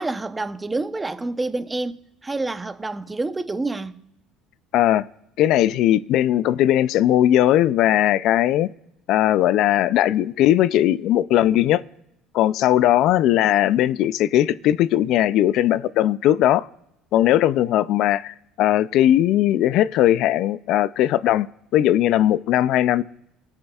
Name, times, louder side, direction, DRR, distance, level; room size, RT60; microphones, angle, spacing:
voice 1, 0.0-4.0, right 2 dB, 15° right, 0.7 m, -28 dB
voice 2, 4.7-5.1 5.4-8.7 9.1-11.8 12.3-16.7 17.1-21.5 21.7-23.0, left 12 dB, 65° left, 0.3 m, -18 dB
19.0 x 9.7 x 2.4 m
supercardioid pair, 105°, 0 cm